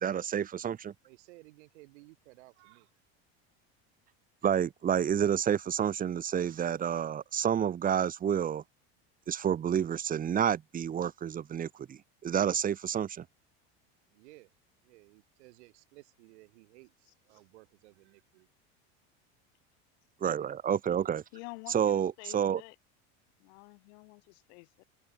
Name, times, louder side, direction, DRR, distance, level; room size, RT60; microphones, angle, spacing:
voice 1, 0.0-0.9 4.4-8.6 9.3-13.2 20.2-21.2 21.7-22.6, right 9 dB, 25° right, 1.2 m, -29 dB
voice 2, 1.0-2.9 14.1-14.5 14.8-18.5, right 22 dB, 85° right, 4.7 m, -57 dB
voice 3, 17.1-17.4 21.3-22.8 23.4-24.8, left 30 dB, 75° left, 4.3 m, -49 dB
supercardioid pair, 140°, 33 cm